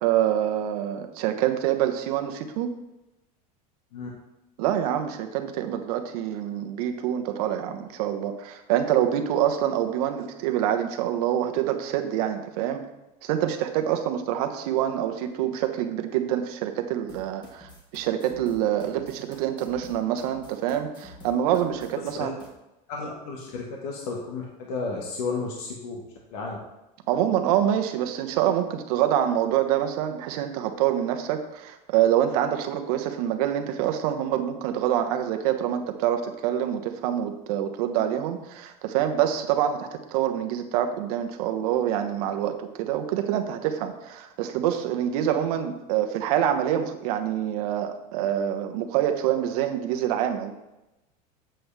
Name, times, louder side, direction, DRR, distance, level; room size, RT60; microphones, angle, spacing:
voice 1, 0.0-2.7 4.6-12.8 13.2-22.3 27.1-50.5, right 10 dB, 70° right, 6 dB, 1.1 m, -26 dB
sound 1, 17.1-22.5, left 2 dB, 20° left, 1.7 m, -48 dB
voice 2, 22.9-26.0 26.3-26.6, left 4 dB, 80° left, -1 dB, 1.5 m, -32 dB
7.7 x 7.7 x 3.4 m, 0.95 s
supercardioid pair, 145°, 20 cm